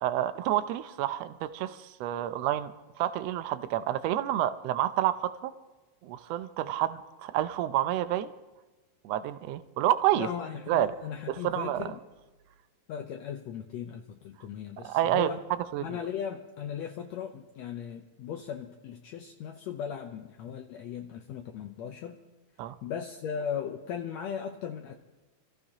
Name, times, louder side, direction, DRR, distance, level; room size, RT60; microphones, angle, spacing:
voice 1, 0.0-2.7 3.0-5.5 6.0-8.3 9.0-10.3 10.7-10.9 11.3-11.9 14.8-15.3 15.7-16.0 22.6-22.7, right 12 dB, 75° right, 11 dB, 1.5 m, -29 dB
voice 2, 10.1-12.0 12.9-15.4 15.8-22.2 22.8-25.0, left 8 dB, 75° left, 4 dB, 1.8 m, -37 dB
28.0 x 14.5 x 2.9 m, 1.2 s
omnidirectional pair, 3.6 m